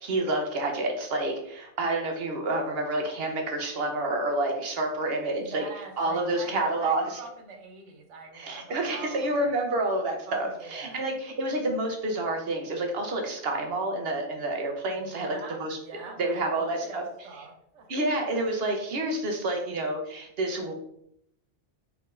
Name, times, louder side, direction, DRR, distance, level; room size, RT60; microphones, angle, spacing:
voice 1, 0.0-5.6 6.0-7.2 8.3-15.3 15.6-15.8 16.2-17.0 17.9-20.7, right 2 dB, 60° right, 2 dB, 1.0 m, -29 dB
voice 2, 5.4-9.6 10.2-11.0 15.0-18.2, right 4 dB, 75° right, 4 dB, 1.1 m, -44 dB
4.7 x 3.4 x 2.5 m, 0.73 s
omnidirectional pair, 1.2 m